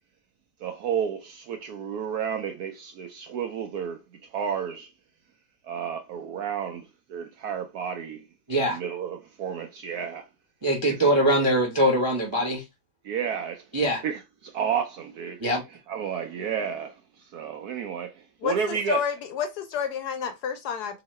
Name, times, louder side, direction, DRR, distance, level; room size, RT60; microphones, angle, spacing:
voice 1, 0.6-4.9 5.6-8.2 8.5-10.3 10.8-11.0 13.0-13.7 14.0-15.4 15.9-19.0, right 7 dB, 75° right, 0.9 m, -31 dB
voice 2, 8.5-8.8 10.6-12.6 13.7-14.0 15.4-15.6, right 1 dB, 35° right, 0.4 m, -22 dB
voice 3, 18.4-21.0, left 7 dB, 70° left, 1.0 m, -30 dB
2.9 x 2.8 x 4.1 m
omnidirectional pair, 2.1 m